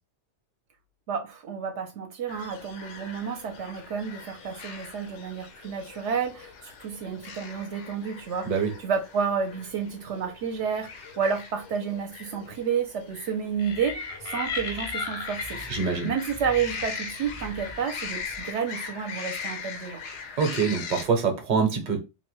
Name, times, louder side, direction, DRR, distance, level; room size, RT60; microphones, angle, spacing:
voice 1, 1.1-8.5 8.8-15.7 16.0-20.0, right 6 dB, 75° right, 0.9 m, -30 dB
sound 1, 2.3-21.0, left 6 dB, 75° left, 0.9 m, -41 dB
sound 2, 13.6-18.4, left 4 dB, 40° left, 0.6 m, -37 dB
voice 2, 15.7-16.1 20.4-22.1, right 5 dB, 45° right, 0.8 m, -25 dB
2.7 x 2.1 x 3.0 m
omnidirectional pair, 1.2 m